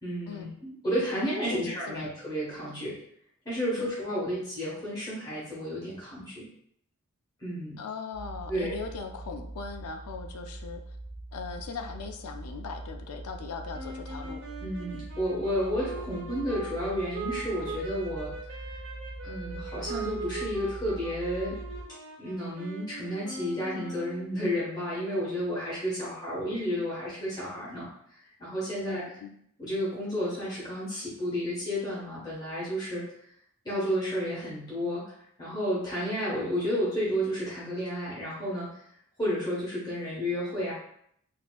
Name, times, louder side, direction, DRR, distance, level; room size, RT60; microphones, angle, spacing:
voice 1, 0.0-3.0 3.4-6.5 7.4-7.8 8.5-8.7 14.6-18.3 19.2-21.6 22.2-29.0 29.6-33.0 33.6-35.1 35.4-38.7 39.2-40.7, equal, 20° left, -8 dB, 1.1 m, -31 dB
voice 2, 1.4-2.1 3.8-4.0 7.8-11.0 11.3-14.4 28.8-29.3, left 4 dB, 90° left, 5 dB, 0.4 m, -39 dB
sound 1, 8.1-21.8, right 2 dB, 75° right, 0.6 m, -42 dB
sound 2, 13.7-24.5, right 3 dB, 55° right, 0.9 m, -41 dB
4.1 x 2.6 x 2.2 m, 0.69 s
head